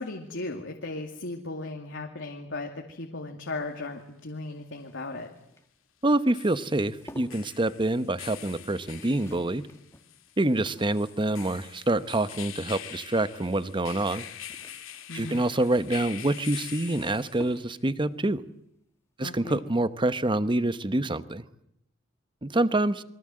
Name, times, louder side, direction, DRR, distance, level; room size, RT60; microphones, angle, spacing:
voice 1, 0.0-5.3 15.1-15.5 19.2-19.6, left 2 dB, 65° left, 2 dB, 2.4 m, -36 dB
sound 1, 3.5-3.6 6.1-17.7, left 10 dB, 85° left, 2.1 m, -44 dB
sound 2, 4.2-13.0 14.2-18.1 19.7-20.0 20.3-20.4, left 1 dB, 15° left, 2.0 m, -53 dB
voice 2, 6.0-9.7 10.4-14.2 15.1-18.4 19.2-21.4 22.4-23.0, right 2 dB, 25° right, 14 dB, 1.0 m, -26 dB
28.5 x 23.0 x 7.7 m, 0.78 s
head